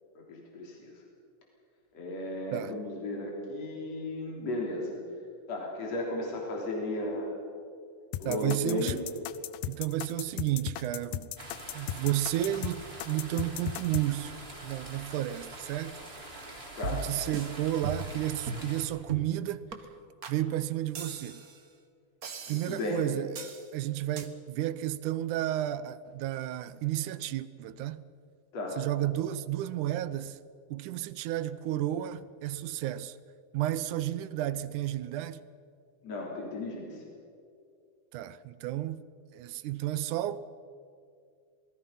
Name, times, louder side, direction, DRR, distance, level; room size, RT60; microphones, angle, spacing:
voice 1, 0.2-0.9 1.9-4.9 5.5-7.3 8.2-9.0 16.8-17.0 22.5-23.0 28.5-28.8 36.0-37.0, left 2 dB, 55° left, 4.4 m, -35 dB
sound 1, 8.1-14.1, left 13 dB, 85° left, 2.3 m, -36 dB
voice 2, 8.3-9.0 9.7-11.3 11.7-14.3 14.6-16.0 16.9-19.6 20.3-21.4 22.5-23.4 23.7-28.0 28.8-30.4 30.7-33.2 33.5-35.4 38.1-39.0 39.3-40.4, right 13 dB, 80° right, 2.2 m, -32 dB
sound 2, 11.4-18.8, right 2 dB, 20° right, 3.2 m, -45 dB
sound 3, 16.8-17.5 17.8-18.2 18.5-18.7 19.1-19.3 19.7-19.8 20.2-20.4 20.9-21.6 22.2-22.9 23.3-23.7 24.2-24.3, right 4 dB, 50° right, 1.1 m, -38 dB
27.0 x 20.0 x 5.6 m
omnidirectional pair, 3.6 m